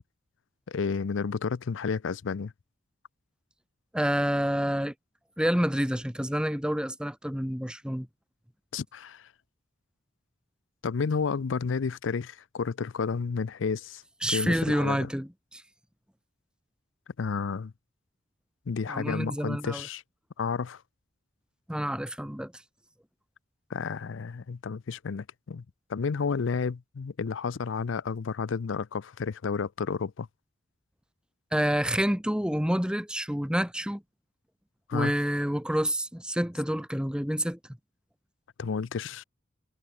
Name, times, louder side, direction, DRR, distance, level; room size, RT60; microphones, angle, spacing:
voice 1, 0.7-2.5 8.7-9.3 10.8-14.0 14.3-15.1 17.2-17.7 18.7-20.0 20.4-20.8 23.7-25.6 25.9-30.3 34.9-35.1 38.6-39.2, left 5 dB, 80° left, 0.5 m, -31 dB
voice 2, 3.9-4.9 5.4-8.1 14.2-15.6 18.9-19.9 21.7-22.5 31.5-34.0 34.9-37.6, equal, 5° right, 1.5 m, -28 dB
head